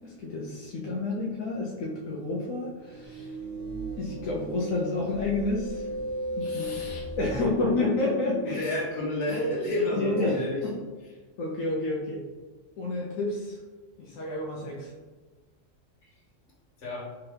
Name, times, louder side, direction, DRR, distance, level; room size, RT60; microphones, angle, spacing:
voice 1, 0.0-3.4 4.0-5.9 6.4-6.8 7.2-8.7 9.3-9.6 9.9-10.8 11.4-12.2 12.8-13.6 14.0-14.9, left 2 dB, 85° left, -3 dB, 1.0 m, -30 dB
sound 1, 2.8-7.5, equal, 85° right, 1.4 m, -36 dB
voice 2, 6.4-7.0 7.7-10.6 16.8-17.0, left 1 dB, 65° left, -4 dB, 1.3 m, -32 dB
3.5 x 3.0 x 3.2 m, 1.3 s
omnidirectional pair, 1.4 m